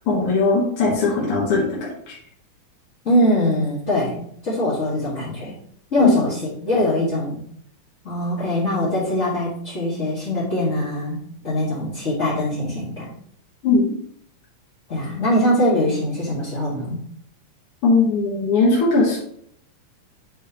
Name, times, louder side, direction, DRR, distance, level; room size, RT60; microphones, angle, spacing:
voice 1, 0.1-2.1 6.0-6.2 13.6-13.9 17.8-19.2, left 3 dB, 55° left, -4 dB, 1.7 m, -19 dB
voice 2, 3.0-5.5 5.9-7.4 8.0-13.1 14.9-17.0, left 1 dB, 40° left, -9 dB, 1.0 m, -22 dB
8.6 x 4.6 x 2.9 m, 0.66 s
omnidirectional pair, 3.9 m